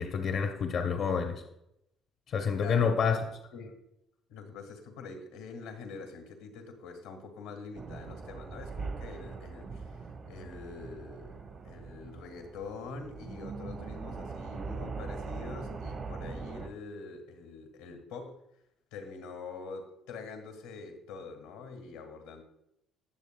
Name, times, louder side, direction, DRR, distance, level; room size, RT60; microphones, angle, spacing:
voice 1, 0.0-1.4 2.3-3.2, left 6 dB, 60° left, 4 dB, 0.8 m, -28 dB
voice 2, 2.6-3.2 3.5-3.8 4.3-18.4 18.9-22.4, left 4 dB, 90° left, 4 dB, 1.5 m, -45 dB
sound 1, 7.7-16.7, right 4 dB, 50° right, 1.2 m, -41 dB
18.0 x 7.0 x 2.2 m, 0.84 s
supercardioid pair, 65°, 0 cm